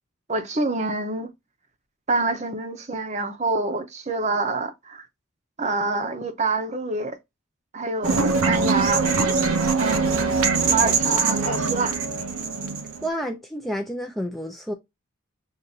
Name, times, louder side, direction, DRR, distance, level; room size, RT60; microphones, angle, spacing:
voice 1, 0.3-1.3 2.1-5.1 5.6-7.2 7.7-9.1 9.8-12.0, right 3 dB, 30° right, 0.7 m, -26 dB
sound 1, 8.0-13.1, right 4 dB, 75° right, 0.7 m, -22 dB
voice 2, 13.0-14.7, equal, ahead, 0.4 m, -30 dB
6.4 x 2.5 x 2.7 m
head